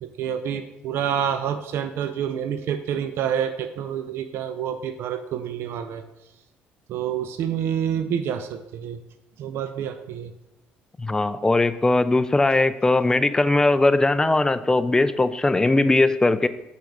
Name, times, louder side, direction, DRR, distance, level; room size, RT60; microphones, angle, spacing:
voice 1, 0.0-6.0 6.9-9.0 9.4-10.3, right 9 dB, 70° right, 9 dB, 0.4 m, -28 dB
voice 2, 11.0-16.5, left 2 dB, 15° left, 13 dB, 0.4 m, -20 dB
5.8 x 3.7 x 5.2 m, 0.92 s
supercardioid pair, 75°, 4 cm